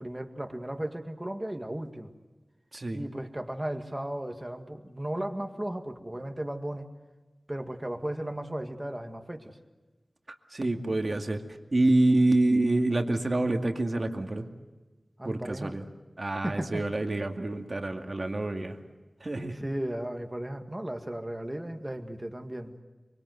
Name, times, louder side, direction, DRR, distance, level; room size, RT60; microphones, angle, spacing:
voice 1, 0.0-2.1 2.9-6.9 7.5-9.6 15.2-15.7 16.4-16.8 19.5-22.7, right 1 dB, 20° right, 5 dB, 2.0 m, -35 dB
voice 2, 10.3-11.4 11.7-14.5 15.2-15.8 16.2-18.8 19.2-19.6, right 2 dB, 50° right, 4 dB, 2.2 m, -27 dB
24.5 x 24.0 x 8.0 m, 1.2 s
wide cardioid pair, 70°, 0 cm